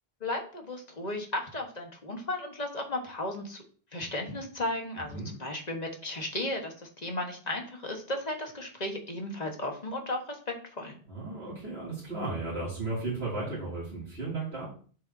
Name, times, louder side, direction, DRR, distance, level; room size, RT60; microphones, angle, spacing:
voice 1, 0.2-3.6 3.9-11.0, left 1 dB, 40° left, 2 dB, 1.5 m, -35 dB
voice 2, 11.1-14.7, right 3 dB, 85° right, -8 dB, 3.0 m, -34 dB
7.6 x 6.8 x 2.7 m, 0.43 s
omnidirectional pair, 1.0 m